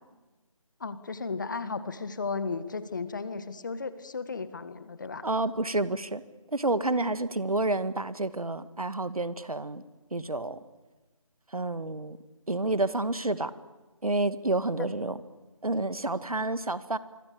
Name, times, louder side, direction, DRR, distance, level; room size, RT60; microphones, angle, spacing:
voice 1, 0.8-5.2, left 4 dB, 35° left, 13 dB, 1.7 m, -35 dB
voice 2, 5.2-6.2 6.5-9.8 10.1-10.6 11.5-12.2 12.5-13.5 14.0-15.2 15.6-17.0, right 2 dB, 85° right, 14 dB, 2.1 m, -29 dB
26.5 x 24.5 x 8.7 m, 1.2 s
figure-of-eight pair, 165°, 18 cm